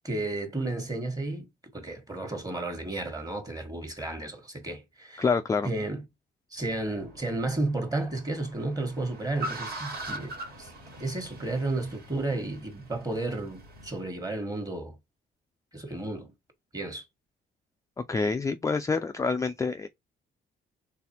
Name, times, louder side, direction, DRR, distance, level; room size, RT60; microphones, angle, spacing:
voice 1, 0.0-1.5 1.7-5.3 5.6-6.0 6.5-10.7 11.0-14.9 15.7-16.3 16.7-17.0, right 2 dB, 20° right, 1.4 m, -32 dB
voice 2, 5.2-5.7 18.1-19.9, left 4 dB, 15° left, 0.3 m, -27 dB
Car, 6.6-14.0, right 1 dB, 55° right, 1.7 m, -42 dB
4.0 x 3.4 x 2.8 m
cardioid pair, 90°, 20 cm